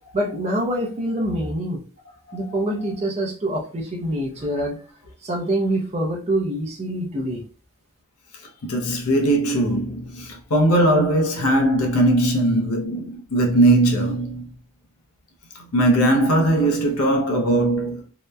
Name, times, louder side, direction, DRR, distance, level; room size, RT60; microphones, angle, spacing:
voice 1, 0.1-1.8 2.3-4.8 5.2-7.4, right 1 dB, 30° right, 0.5 m, -25 dB
voice 2, 8.6-14.5 15.7-18.0, right 1 dB, 85° left, 0.6 m, -19 dB
2.8 x 2.1 x 2.2 m
head